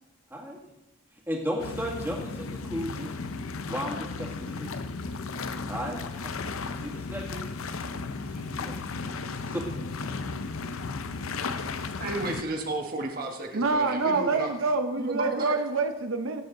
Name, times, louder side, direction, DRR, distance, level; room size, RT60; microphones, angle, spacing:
voice 1, 1.3-3.1 3.7-4.8 5.7-6.3 6.8-7.5 8.3-8.7 9.5-9.6, equal, 10° right, -1 dB, 2.0 m, -34 dB
sound 1, 1.6-12.4, left 4 dB, 85° left, 0.7 m, -35 dB
voice 2, 12.0-14.5 15.0-15.5, right 2 dB, 45° right, 1 dB, 1.5 m, -32 dB
voice 3, 13.5-16.4, right 3 dB, 75° right, 7 dB, 0.8 m, -26 dB
16.5 x 7.9 x 3.9 m, 0.94 s
head